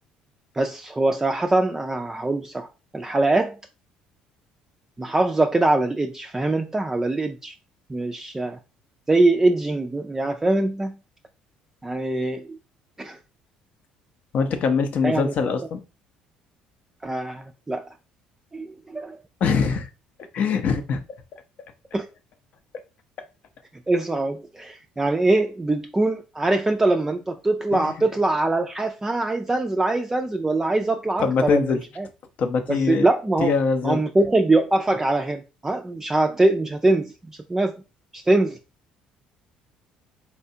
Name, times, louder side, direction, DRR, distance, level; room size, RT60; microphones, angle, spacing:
voice 1, 0.5-2.7 2.9-3.6 5.0-7.5 7.9-8.6 9.1-10.9 11.8-12.6 13.0-13.2 15.0-15.3 17.0-17.9 18.5-19.2 21.9-22.1 23.9-32.1 32.7-33.5 33.8-37.8 38.1-38.6, right 2 dB, 15° right, 0.3 m, -23 dB
voice 2, 14.3-15.8 19.4-19.9 20.3-21.0 27.7-27.9 31.2-31.8 32.4-33.1 33.4-34.0, left 5 dB, 55° left, 0.6 m, -23 dB
4.2 x 2.2 x 2.7 m
supercardioid pair, 80°, 3 cm